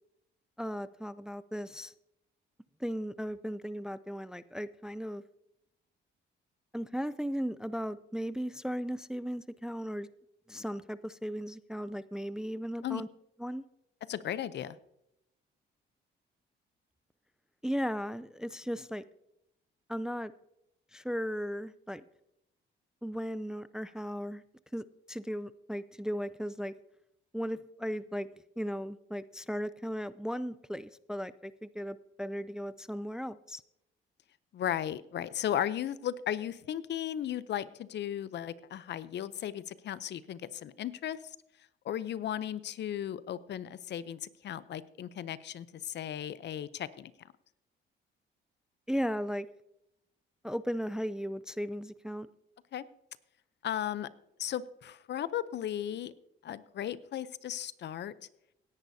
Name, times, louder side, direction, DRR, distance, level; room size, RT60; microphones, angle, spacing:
voice 1, 0.6-1.9 2.8-5.2 6.7-10.1 10.5-13.1 13.4-13.6 17.6-19.0 19.9-20.3 20.9-22.0 23.0-24.4 24.7-26.7 27.3-28.3 28.6-33.6 48.9-49.5 50.4-52.3, equal, 5° right, 16 dB, 0.4 m, -36 dB
voice 2, 14.1-14.8 34.5-41.3 41.8-47.1 52.7-52.8 53.6-54.1 54.4-56.1 56.4-58.1, left 10 dB, 60° left, 16 dB, 0.6 m, -36 dB
17.5 x 10.5 x 2.7 m, 0.81 s
cardioid pair, 90°, 20 cm